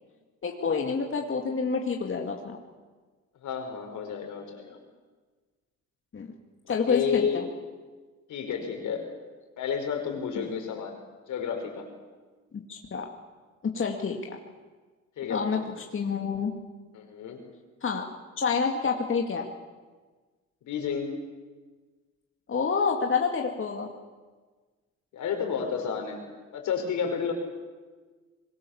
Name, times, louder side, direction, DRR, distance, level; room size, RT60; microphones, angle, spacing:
voice 1, 0.4-2.6 6.1-6.3 6.7-7.4 10.4-10.5 12.7-13.1 13.6-14.4 15.3-16.5 17.8-18.0 18.4-19.5 22.5-23.9, left 5 dB, 45° left, 1 dB, 2.4 m, -28 dB
voice 2, 3.4-4.8 6.7-7.5 8.3-9.1 9.6-11.0 11.3-11.8 15.2-15.5 16.9-17.4 20.6-21.2 25.1-26.2 26.5-27.3, left 7 dB, 75° left, 3 dB, 5.2 m, -31 dB
25.0 x 21.5 x 7.3 m, 1.4 s
cardioid pair, 90°, 30 cm